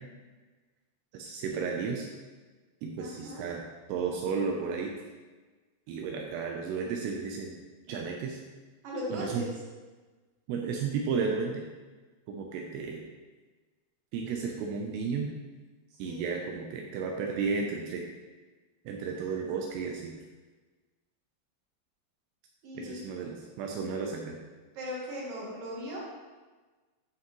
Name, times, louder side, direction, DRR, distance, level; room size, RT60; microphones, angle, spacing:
voice 1, 1.1-2.1 2.8-3.6 3.9-4.9 5.9-7.6 7.9-8.4 9.1-9.4 10.5-11.6 12.3-13.0 14.1-15.3 16.0-18.1 18.9-20.2 22.7-24.4, right 5 dB, 90° right, 1 dB, 2.4 m, -33 dB
voice 2, 3.0-3.5 8.8-9.5 16.0-16.4 22.6-23.0 24.8-26.1, equal, 65° right, -4 dB, 2.5 m, -38 dB
10.0 x 5.9 x 3.1 m, 1.3 s
omnidirectional pair, 5.6 m